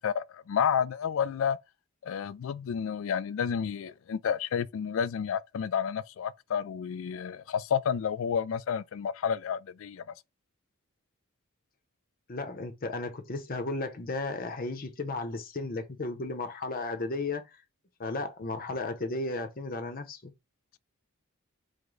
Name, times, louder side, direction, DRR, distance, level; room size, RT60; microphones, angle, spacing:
voice 1, 0.0-1.6 2.0-10.0, left 7 dB, 70° left, 0.3 m, -30 dB
voice 2, 12.3-17.4 18.0-20.3, left 2 dB, 45° left, 0.7 m, -34 dB
4.8 x 2.1 x 3.8 m
head